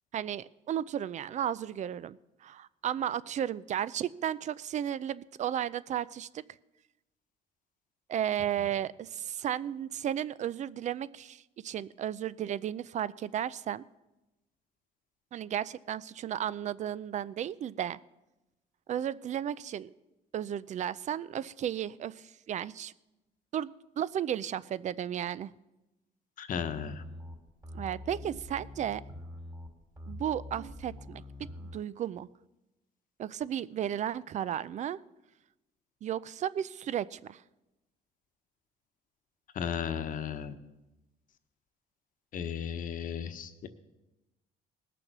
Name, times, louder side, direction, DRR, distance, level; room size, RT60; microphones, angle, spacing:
voice 1, 0.1-6.4 8.1-13.8 15.3-18.0 18.9-19.9 20.3-22.9 23.5-25.5 27.7-29.0 30.1-31.2 31.6-32.3 33.2-35.0 36.0-37.4, right 10 dB, 45° right, 19 dB, 0.4 m, -34 dB
voice 2, 26.4-27.0 39.5-40.5 42.3-43.7, left 8 dB, 55° left, 10 dB, 1.1 m, -35 dB
sound 1, 26.8-31.8, left 1 dB, 20° right, 2.3 m, -44 dB
19.5 x 6.9 x 6.1 m, 0.99 s
cardioid pair, 110°, 17 cm